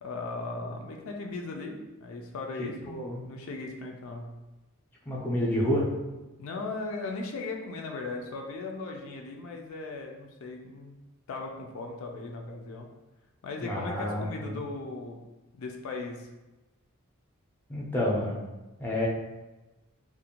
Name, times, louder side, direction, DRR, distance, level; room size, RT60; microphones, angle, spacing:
voice 1, 0.0-4.3 6.4-11.0 11.3-12.9 13.4-15.2 15.5-16.3, left 3 dB, 70° left, 2 dB, 0.3 m, -38 dB
voice 2, 2.6-3.3 5.0-5.9 13.6-14.6 17.7-18.4 18.8-19.1, left 1 dB, 10° left, -5 dB, 0.4 m, -29 dB
2.5 x 2.1 x 2.8 m, 1.1 s
head